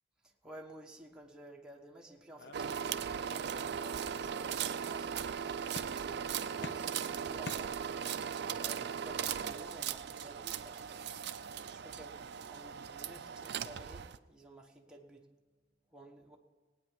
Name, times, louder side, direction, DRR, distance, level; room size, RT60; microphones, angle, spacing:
voice 1, 0.2-15.3 15.9-16.4, right 1 dB, 5° right, -1 dB, 1.3 m, -54 dB
sound 1, 2.4-3.7 4.1-4.8 5.8-6.3 6.6-8.2, left 3 dB, 60° left, 0.8 m, -49 dB
sound 2, 2.5-14.2, right 8 dB, 60° right, 0.5 m, -38 dB
19.0 x 9.1 x 5.2 m, 1.4 s
head